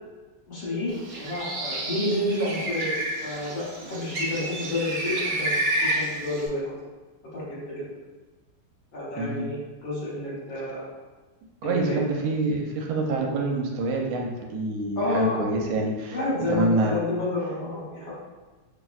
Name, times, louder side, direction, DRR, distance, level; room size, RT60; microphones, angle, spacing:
voice 1, 0.5-6.7 7.3-7.7 8.9-10.9 11.6-12.0 15.0-15.4 16.1-18.1, left 1 dB, 65° left, -8 dB, 1.8 m, -30 dB
Bird, 0.9-6.5, right 1 dB, 60° right, 0.9 m, -30 dB
voice 2, 9.2-9.5 11.6-16.2 16.5-16.9, right 2 dB, 80° right, 0 dB, 1.4 m, -26 dB
5.5 x 2.1 x 2.3 m, 1.2 s
omnidirectional pair, 2.4 m